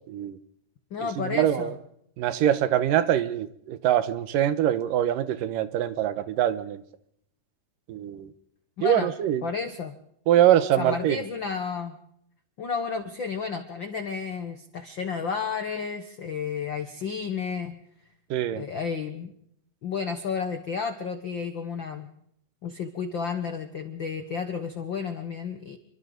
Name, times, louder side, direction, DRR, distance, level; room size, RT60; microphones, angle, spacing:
voice 1, 0.1-0.4 1.0-1.8 2.2-6.8 7.9-8.3 8.8-9.4 10.3-11.2 18.3-18.7, right 11 dB, 80° right, 12 dB, 2.6 m, -24 dB
voice 2, 0.9-1.7 8.8-9.1 9.4-9.9 10.8-12.0 12.6-17.8 18.5-19.3 19.8-22.1 22.6-25.8, left 5 dB, 70° left, 6 dB, 1.1 m, -32 dB
28.0 x 23.5 x 3.9 m, 0.70 s
omnidirectional pair, 3.9 m